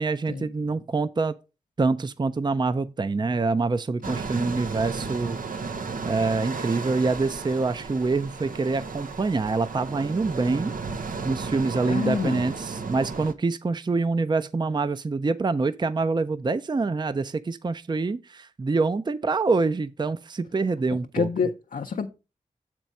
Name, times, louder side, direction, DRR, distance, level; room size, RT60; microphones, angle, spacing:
voice 1, 0.0-1.4 1.8-5.7 6.1-10.7 11.0-21.3, right 3 dB, 35° right, 0.4 m, -26 dB
sound 1, 4.0-13.3, right 4 dB, 85° right, 0.7 m, -34 dB
voice 2, 11.8-12.5 21.1-22.1, left 5 dB, 80° left, 0.6 m, -27 dB
7.2 x 4.5 x 5.3 m
cardioid pair, 45°, 14 cm